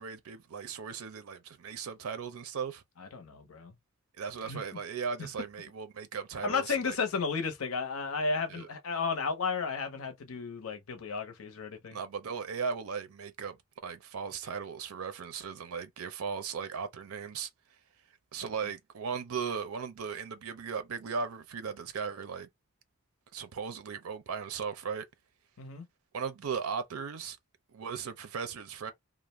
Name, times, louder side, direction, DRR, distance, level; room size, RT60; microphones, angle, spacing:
voice 1, 0.0-2.8 4.2-7.0 8.5-8.7 11.9-13.6 13.8-17.5 18.3-22.5 23.3-25.1 26.1-27.4 27.7-28.9, right 6 dB, 80° right, 0.5 m, -37 dB
voice 2, 3.0-3.7 4.4-4.6 5.2-5.3 6.4-12.0 25.6-25.8, left 4 dB, 75° left, 0.7 m, -33 dB
2.4 x 2.0 x 3.0 m
head